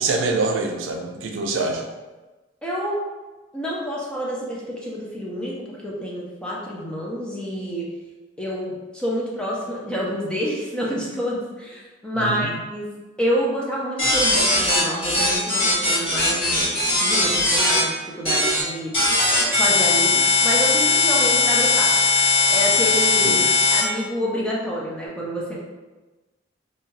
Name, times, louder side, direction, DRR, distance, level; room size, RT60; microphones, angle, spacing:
voice 1, 0.0-1.9 12.1-12.5 23.2-23.4, right 3 dB, 85° right, 3 dB, 0.4 m, -25 dB
voice 2, 2.6-3.0 3.5-7.9 8.4-12.9 13.2-16.6 16.9-18.9 19.5-21.9 22.5-23.4 23.7-25.6, equal, 5° left, -5 dB, 0.5 m, -28 dB
sound 1, 14.0-17.8 18.2-18.6 18.9-23.8, left 3 dB, 30° left, 1.3 m, -19 dB
2.7 x 2.2 x 3.1 m, 1.2 s
head